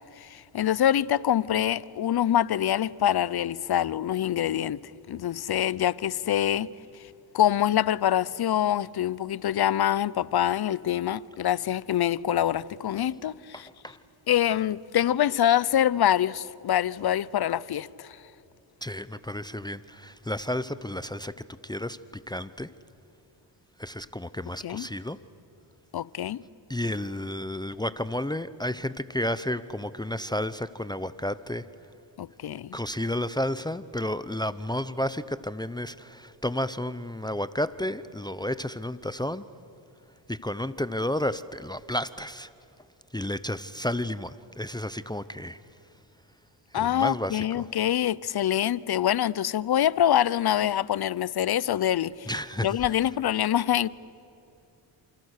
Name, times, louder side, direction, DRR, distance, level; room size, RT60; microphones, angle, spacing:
voice 1, 0.2-4.8 5.1-6.7 7.3-13.7 14.3-18.2 24.6-24.9 25.9-26.4 32.2-32.8 46.7-52.3 52.6-53.9, left 11 dB, 55° left, 0.7 m, -25 dB
voice 2, 13.5-14.0 18.8-21.3 21.6-22.0 22.3-22.7 23.8-25.2 26.7-31.7 32.7-39.4 40.3-42.5 43.1-45.6 46.7-47.7 52.3-52.7, left 1 dB, 10° left, 0.8 m, -31 dB
30.0 x 27.5 x 6.6 m
cardioid pair, 70°, 45 cm